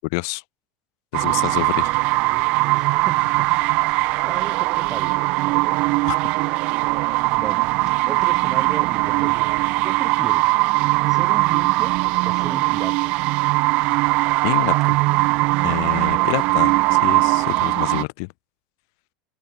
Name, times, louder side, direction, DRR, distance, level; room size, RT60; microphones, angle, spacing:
voice 1, 0.1-0.4 1.1-1.9 6.1-6.2 14.4-15.0 15.6-18.3, left 32 dB, 70° left, 4.6 m, -27 dB
sound 1, 1.1-18.0, right 23 dB, 55° right, 0.3 m, -20 dB
voice 2, 2.6-3.5 3.9-5.9 7.4-7.7 8.1-9.4 9.8-10.5 11.1-12.0 12.3-13.1, right 6 dB, 20° right, 7.2 m, -36 dB
supercardioid pair, 125°, 2 cm